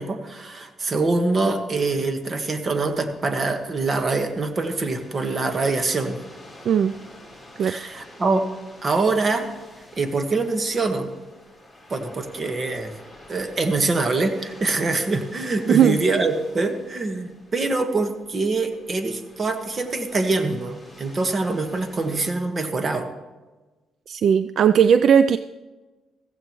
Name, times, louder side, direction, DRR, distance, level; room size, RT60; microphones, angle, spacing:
voice 1, 0.0-6.2 7.6-8.5 8.8-9.5 9.9-11.1 11.9-12.9 13.3-23.1, right 3 dB, 35° right, 6 dB, 1.5 m, -24 dB
sound 1, 2.7-22.3, left 1 dB, ahead, 3.6 m, -48 dB
voice 2, 24.1-25.4, right 8 dB, 65° right, 12 dB, 0.3 m, -17 dB
15.0 x 14.5 x 3.1 m, 1.2 s
cardioid pair, 90°, 0 cm